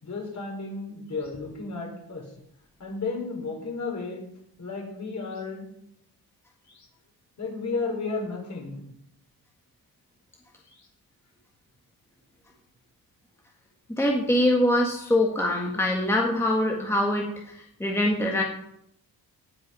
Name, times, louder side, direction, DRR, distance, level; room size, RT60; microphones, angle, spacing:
voice 1, 0.0-2.3 2.8-4.2 4.6-5.6 6.7-6.9 7.4-8.8 10.7-10.9, left 4 dB, 45° left, 0 dB, 5.0 m, -33 dB
voice 2, 13.9-17.3 17.8-18.4, left 1 dB, 5° left, -1 dB, 1.7 m, -23 dB
18.0 x 9.3 x 5.5 m, 0.74 s
wide cardioid pair, 160°, 40 cm